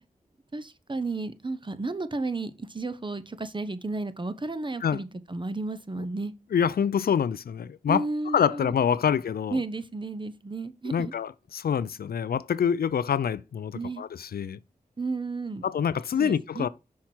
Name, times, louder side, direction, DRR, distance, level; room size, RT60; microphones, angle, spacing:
voice 1, 0.5-6.3 7.9-8.7 9.5-11.1 13.7-14.0 15.0-15.6 16.1-16.6, right 3 dB, 30° right, 0.8 m, -33 dB
voice 2, 6.5-8.1 8.3-9.6 10.9-14.6 15.6-16.7, left 8 dB, 85° left, 0.4 m, -26 dB
5.9 x 4.7 x 4.3 m
cardioid pair, 50°, 15 cm